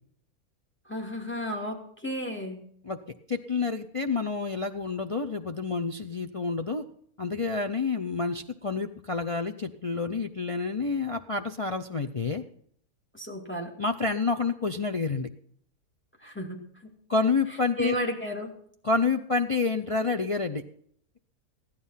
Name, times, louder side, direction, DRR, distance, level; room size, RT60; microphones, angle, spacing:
voice 1, 0.9-2.6 13.1-13.7 16.2-16.6 17.8-18.5, equal, 5° left, 1 dB, 2.4 m, -33 dB
voice 2, 3.3-6.8 7.2-12.4 13.8-15.3 17.1-18.0 18.8-20.6, left 4 dB, 55° left, 4 dB, 0.3 m, -28 dB
15.5 x 11.5 x 5.6 m, 0.63 s
omnidirectional pair, 1.6 m